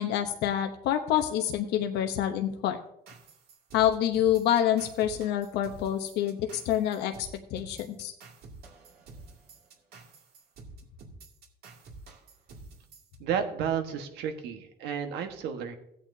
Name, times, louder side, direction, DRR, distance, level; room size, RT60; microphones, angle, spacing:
voice 1, 0.0-2.8 3.7-8.1, left 11 dB, 85° left, 5 dB, 0.9 m, -27 dB
sound 1, 3.1-13.2, right 3 dB, 70° right, 2.2 m, -50 dB
voice 2, 13.2-15.8, right 8 dB, 85° right, 6 dB, 1.3 m, -32 dB
16.0 x 8.7 x 2.7 m, 0.74 s
cardioid pair, 110°, 17 cm